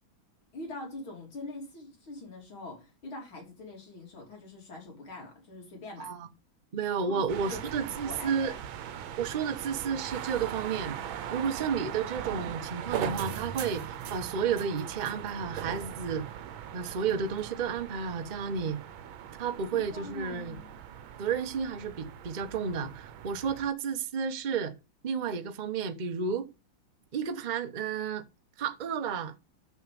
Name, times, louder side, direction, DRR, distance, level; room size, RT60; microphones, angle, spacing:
voice 1, 0.5-6.1 7.0-8.6 19.7-20.7, left 2 dB, 85° left, 3.9 m, -43 dB
voice 2, 6.7-8.5 9.2-11.0 11.3-16.2 16.7-18.8 19.4-20.6 21.2-24.7 25.0-26.5 27.1-28.2 28.6-29.3, right 6 dB, 60° right, 0.4 m, -32 dB
sound 1, 7.3-23.7, right 9 dB, 80° right, 1.6 m, -40 dB
6.4 x 6.4 x 4.9 m
omnidirectional pair, 2.2 m